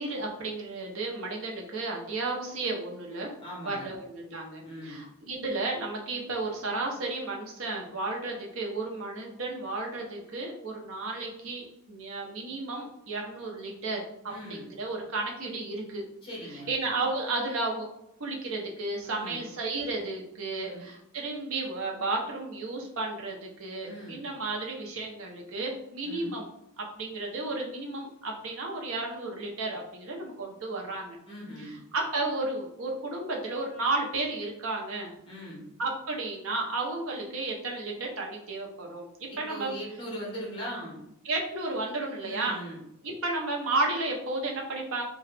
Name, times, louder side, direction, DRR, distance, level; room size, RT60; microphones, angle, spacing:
voice 1, 0.0-3.3 3.6-14.1 14.5-16.0 16.7-17.9 18.2-26.5 26.8-31.2 31.6-35.1 35.8-39.7 41.2-42.6 43.0-45.1, right 2 dB, 65° right, 0 dB, 0.7 m, -33 dB
voice 2, 3.4-3.9 4.6-5.0 14.3-14.7 16.2-16.7 19.0-19.4 20.5-20.9 23.8-24.2 26.0-26.3 31.3-31.8 35.3-35.6 39.3-41.0 42.2-42.8, equal, 25° left, -4 dB, 1.1 m, -40 dB
2.8 x 2.2 x 3.3 m, 0.80 s
head